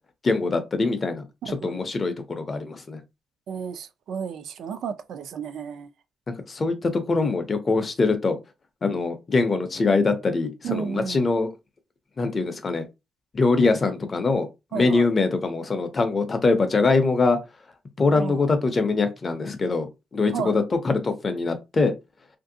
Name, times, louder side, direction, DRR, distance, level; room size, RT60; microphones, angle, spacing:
voice 1, 0.2-3.0 6.5-8.4 8.8-11.5 12.2-12.8 13.3-17.4 18.0-19.9 20.1-21.9, left 3 dB, 25° left, 0.5 m, -23 dB
voice 2, 1.5-1.8 3.5-5.9 10.6-11.2 14.7-15.1 18.1-18.4 20.3-20.6, right 7 dB, 60° right, 0.4 m, -32 dB
3.1 x 2.5 x 2.6 m
cardioid pair, 170°, 0 cm